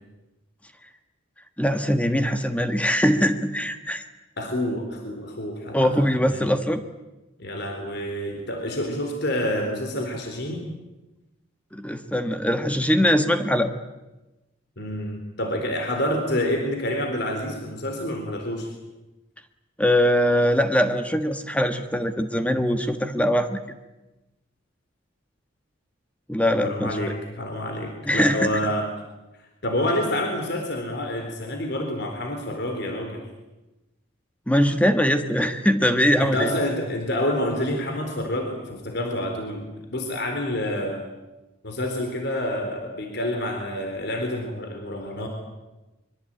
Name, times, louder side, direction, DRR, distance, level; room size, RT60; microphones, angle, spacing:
voice 1, 1.6-4.0 5.7-6.8 11.7-13.7 19.8-23.6 26.3-27.0 28.1-28.5 34.5-36.5, equal, 5° left, 7 dB, 1.5 m, -22 dB
voice 2, 4.4-5.9 6.2-6.4 7.4-10.6 14.8-18.7 26.6-28.9 29.6-33.2 36.2-41.1 41.6-45.3, left 1 dB, 60° left, 3 dB, 4.0 m, -28 dB
24.0 x 23.5 x 9.1 m, 1.0 s
head